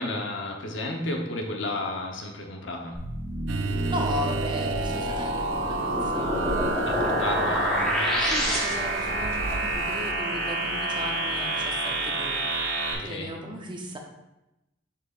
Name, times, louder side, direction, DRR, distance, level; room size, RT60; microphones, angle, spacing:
voice 1, 0.0-3.0 6.8-8.1 12.9-13.3, left 2 dB, 75° left, 2 dB, 1.0 m, -32 dB
sound 1, 2.9-12.9, right 2 dB, 50° right, 1.3 m, -29 dB
sound 2, 3.5-10.1, right 3 dB, 85° right, 0.5 m, -35 dB
voice 2, 3.9-7.3 8.2-12.5 13.0-14.0, equal, 25° right, 2 dB, 0.8 m, -36 dB
sound 3, 5.5-9.1, equal, 5° left, 1.2 m, -28 dB
6.9 x 5.6 x 2.5 m, 0.93 s
head